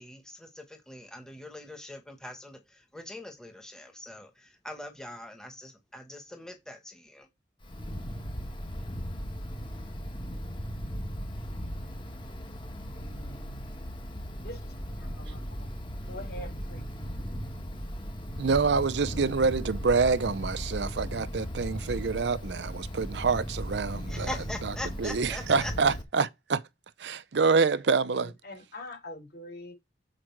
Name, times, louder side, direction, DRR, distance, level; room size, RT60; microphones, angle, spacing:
voice 1, 0.0-7.3 24.1-25.7, left 1 dB, 5° left, 1.3 m, -42 dB
Wind, 7.6-26.0, equal, 25° left, 1.3 m, -37 dB
voice 2, 12.9-13.5 14.4-15.7 16.1-16.8 28.1-29.7, left 1 dB, 55° left, 4.2 m, -45 dB
voice 3, 18.4-24.3 25.0-26.6 27.0-28.3, right 4 dB, 75° right, 0.6 m, -26 dB
7.8 x 4.8 x 4.5 m
head